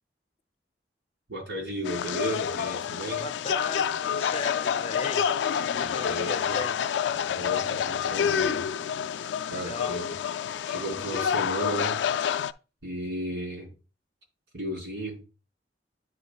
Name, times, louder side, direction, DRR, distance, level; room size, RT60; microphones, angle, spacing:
voice 1, 1.3-3.2 5.7-6.6 7.3-8.6 9.5-10.1 10.7-12.0 12.8-13.7 14.5-15.2, right 1 dB, 85° right, 4.1 m, -34 dB
sound 1, 1.8-12.5, left 8 dB, 85° left, 0.3 m, -28 dB
voice 2, 3.2-5.3 5.7-6.8 9.5-10.0, left 3 dB, 35° left, 0.7 m, -37 dB
9.6 x 5.1 x 2.3 m
head